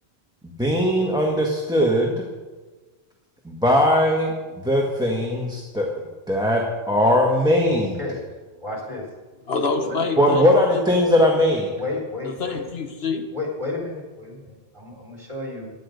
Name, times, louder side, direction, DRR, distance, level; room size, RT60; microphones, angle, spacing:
voice 1, 0.4-2.2 3.4-4.3 4.6-5.9 6.3-8.0 10.2-11.7, left 1 dB, 5° right, -1 dB, 1.4 m, -19 dB
voice 2, 7.6-8.2 8.6-9.4 9.9-10.0 11.8-12.6 13.3-15.7, left 2 dB, 30° right, -1 dB, 3.7 m, -32 dB
voice 3, 9.5-10.6 12.2-13.3, left 4 dB, 65° left, 6 dB, 1.3 m, -26 dB
16.5 x 10.5 x 5.2 m, 1.3 s
omnidirectional pair, 1.1 m